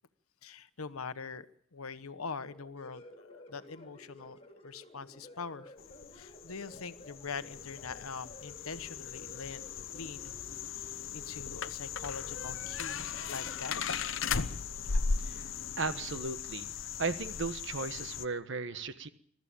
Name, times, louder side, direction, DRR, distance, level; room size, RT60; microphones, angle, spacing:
voice 1, 0.4-5.8 6.1-9.7 9.9-10.3 10.7-13.8, left 5 dB, 85° left, 1.1 m, -43 dB
sound 1, 2.3-16.0, left 1 dB, 25° left, 3.2 m, -55 dB
sound 2, 5.8-18.3, left 5 dB, 65° left, 0.8 m, -37 dB
voice 2, 15.8-16.7 17.0-19.1, right 4 dB, 55° right, 1.3 m, -36 dB
22.5 x 13.5 x 8.8 m
head